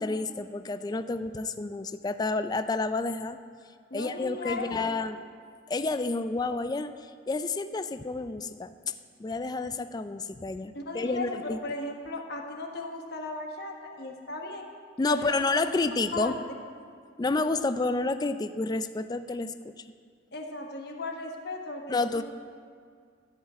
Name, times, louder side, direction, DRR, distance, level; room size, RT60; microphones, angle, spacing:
voice 1, 0.0-3.4 3.9-5.2 5.7-6.9 7.3-8.9 9.2-11.6 15.0-16.4 17.2-19.7 21.9-22.2, left 3 dB, 20° left, 10 dB, 0.3 m, -30 dB
voice 2, 3.9-5.0 10.7-14.7 15.0-15.6 16.1-16.4 20.3-22.2, left 2 dB, 60° left, 2 dB, 1.3 m, -36 dB
13.5 x 5.5 x 8.8 m, 2.1 s
head